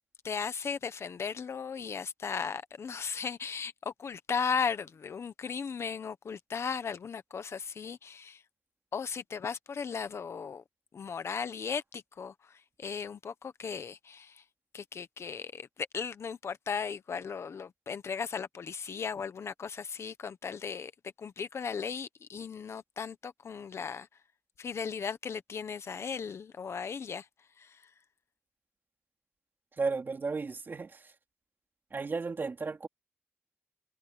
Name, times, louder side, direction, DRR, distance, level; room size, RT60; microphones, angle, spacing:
voice 1, 0.2-8.4 8.9-10.6 10.9-14.4 14.7-24.1 24.6-27.9, left 6 dB, 70° left, 1.2 m, -36 dB
voice 2, 29.7-31.1 31.9-32.9, right 4 dB, 45° right, 3.0 m, -34 dB
wide cardioid pair, 115°, 5 cm